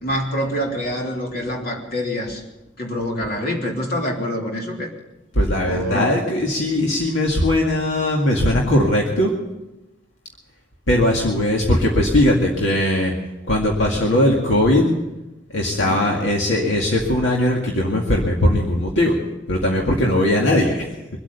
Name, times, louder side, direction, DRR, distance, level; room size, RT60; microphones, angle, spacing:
voice 1, 0.0-2.4 2.8-4.9 5.6-6.2 15.7-16.0 20.0-20.2, equal, 50° left, 0 dB, 3.3 m, -26 dB
voice 2, 5.3-9.3 10.9-13.1 13.5-14.9 15.5-19.2 19.5-20.8, left 1 dB, 70° left, -1 dB, 2.2 m, -19 dB
23.5 x 8.6 x 6.9 m, 1.0 s
head